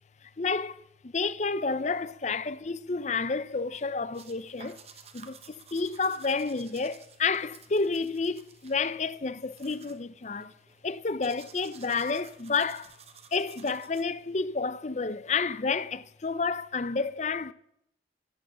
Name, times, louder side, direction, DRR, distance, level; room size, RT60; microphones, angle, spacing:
voice 1, 0.2-4.8 5.1-10.5 10.8-12.9 13.3-17.5, left 4 dB, 40° left, 0.6 m, -30 dB
sound 1, 4.1-14.4, right 7 dB, 35° right, 1.0 m, -54 dB
14.0 x 7.8 x 8.6 m
head